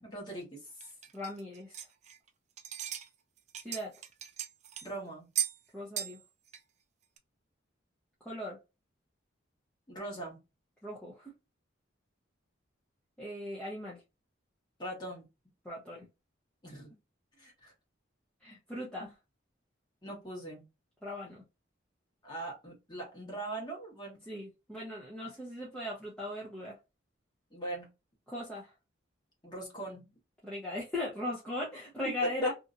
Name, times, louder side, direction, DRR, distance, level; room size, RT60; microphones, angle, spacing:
voice 1, 0.0-0.7 4.8-5.3 9.9-10.4 14.8-15.2 16.6-16.9 17.4-17.7 19.0-19.1 20.0-20.6 22.2-24.2 27.5-27.9 29.4-30.1 32.2-32.5, right 1 dB, 20° left, -1 dB, 1.3 m, -40 dB
sound 1, 0.8-2.3 2.6-3.1 3.4-4.9 5.3-5.6 6.0-6.2 6.5-6.6 7.2-7.3, right 10 dB, 35° right, 0.3 m, -37 dB
voice 2, 1.1-1.8 3.6-3.9 5.7-6.2 8.2-8.6 10.8-11.3 13.2-14.0 15.6-16.1 18.4-19.2 21.0-21.4 24.3-26.8 28.3-28.7 30.4-32.5, left 1 dB, 5° left, -5 dB, 0.6 m, -38 dB
2.8 x 2.6 x 2.4 m, 0.26 s
head